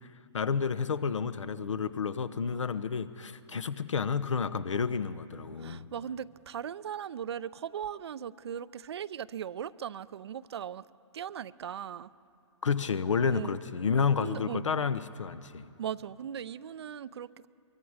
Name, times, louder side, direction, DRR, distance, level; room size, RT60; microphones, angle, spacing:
voice 1, 0.3-5.9 12.6-15.7, left 6 dB, 75° left, 13 dB, 1.0 m, -30 dB
voice 2, 5.6-10.9 11.1-12.1 13.3-13.6 14.2-14.7 15.8-17.5, right 9 dB, 55° right, 17 dB, 0.5 m, -38 dB
24.0 x 23.0 x 4.9 m, 2.6 s
figure-of-eight pair, 130°, 16 cm